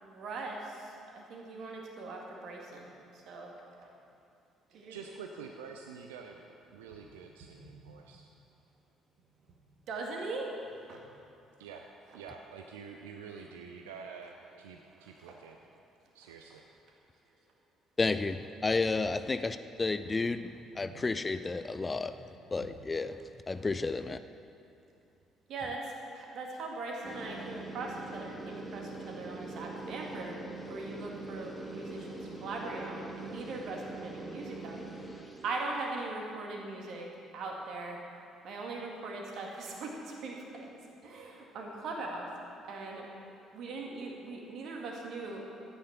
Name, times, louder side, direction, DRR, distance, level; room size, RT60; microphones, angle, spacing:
voice 1, 0.0-2.9 3.3-3.5 4.9-5.0 9.9-10.5 10.9-11.0 15.0-15.4 20.8-21.0 22.6-22.7 25.5-30.4 30.7-34.8 35.4-37.1 37.3-38.0 38.4-40.7 41.0-42.3 42.7-43.1 43.5-45.4, right 3 dB, 55° right, 0 dB, 2.1 m, -40 dB
voice 2, 4.9-8.3 11.6-11.9 12.1-15.6 16.1-16.6, right 6 dB, 70° right, 3 dB, 0.6 m, -47 dB
voice 3, 18.0-20.5 20.8-22.2 22.5-23.2 23.5-24.2, left 3 dB, 25° left, 11 dB, 0.5 m, -31 dB
sound 1, 27.0-35.8, right 2 dB, 5° left, 1.9 m, -43 dB
13.0 x 9.6 x 5.9 m, 2.6 s
figure-of-eight pair, 50°, 0 cm